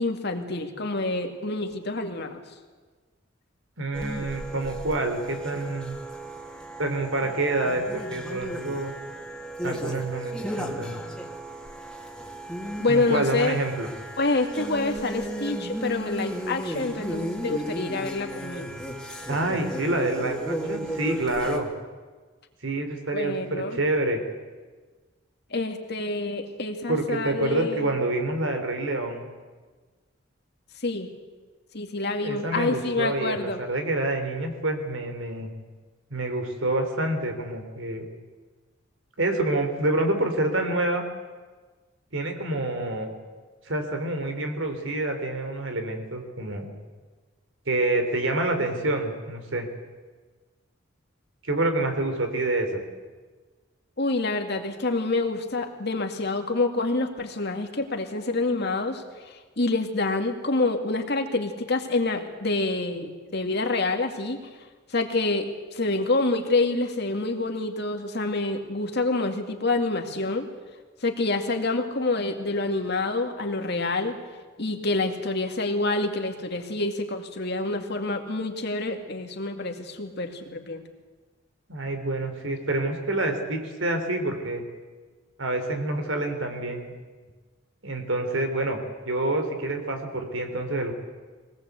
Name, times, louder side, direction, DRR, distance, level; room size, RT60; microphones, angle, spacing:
voice 1, 0.0-2.4 12.8-13.6 14.2-18.7 23.1-23.8 25.5-28.0 30.8-31.1 31.7-33.6 54.0-64.4 64.9-70.5 71.0-74.2 74.6-80.8, left 2 dB, 60° left, 5 dB, 2.3 m, -27 dB
voice 2, 3.8-6.0 6.8-8.9 9.6-11.0 12.9-13.9 19.3-21.7 22.6-24.2 26.9-29.2 32.2-35.5 36.1-38.1 39.2-41.0 42.1-43.1 43.7-46.7 47.7-49.7 51.4-52.8 81.7-84.6 85.4-86.9 87.8-90.9, right 2 dB, 85° right, 6 dB, 3.5 m, -27 dB
sound 1, 3.9-21.6, right 1 dB, 5° left, 2.3 m, -35 dB
23.0 x 18.5 x 8.2 m, 1.4 s
head